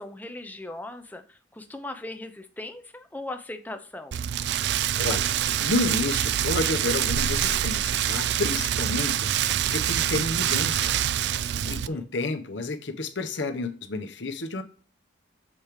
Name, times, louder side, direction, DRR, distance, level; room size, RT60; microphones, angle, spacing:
voice 1, 0.0-4.2 11.6-12.0, left 2 dB, 10° left, 7 dB, 0.6 m, -39 dB
Rain, 4.1-11.9, right 11 dB, 60° right, 0.3 m, -25 dB
voice 2, 5.6-11.1 11.4-14.6, left 2 dB, 75° left, 7 dB, 0.9 m, -30 dB
7.3 x 5.0 x 3.1 m, 0.41 s
head